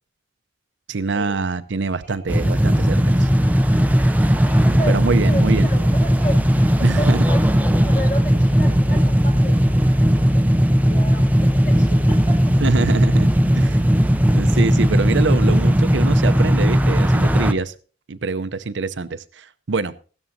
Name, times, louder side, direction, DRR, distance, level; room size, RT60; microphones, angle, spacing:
voice 1, 0.9-3.3 4.9-5.7 6.8-7.2 12.6-13.3 13.5-13.9 14.3-17.7 18.1-19.9, right 3 dB, 75° right, 12 dB, 0.7 m, -24 dB
sound 1, 2.3-17.5, equal, 10° right, 0.5 m, -17 dB
voice 2, 4.4-6.4 6.8-12.0 12.3-12.4, equal, 45° left, 1 dB, 5.5 m, -33 dB
16.0 x 13.0 x 2.7 m, 0.37 s
head